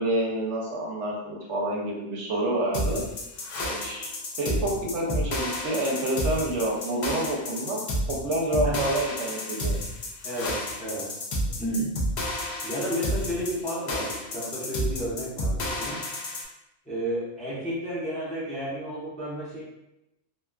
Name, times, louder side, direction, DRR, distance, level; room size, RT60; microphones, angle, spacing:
voice 1, 0.0-3.0 3.6-4.1 4.4-7.8 8.1-9.7, right 1 dB, 70° right, -3 dB, 0.9 m, -28 dB
sound 1, 2.7-16.5, equal, 70° left, 0.4 m, -31 dB
voice 2, 10.2-11.2 11.6-12.0 12.6-16.0 16.9-19.6, right 1 dB, 10° left, -9 dB, 0.5 m, -32 dB
2.7 x 2.2 x 2.2 m, 0.88 s
omnidirectional pair, 1.3 m